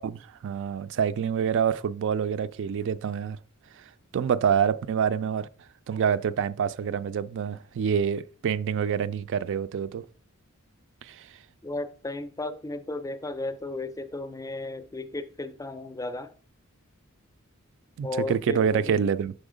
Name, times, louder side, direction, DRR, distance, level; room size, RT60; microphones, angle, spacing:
voice 1, 0.0-3.4 4.1-5.5 5.9-10.0 11.0-11.3 18.0-19.3, right 7 dB, 60° right, 0.3 m, -26 dB
voice 2, 11.6-16.3 18.0-19.0, left 2 dB, 15° left, 0.5 m, -34 dB
6.2 x 4.3 x 5.0 m
head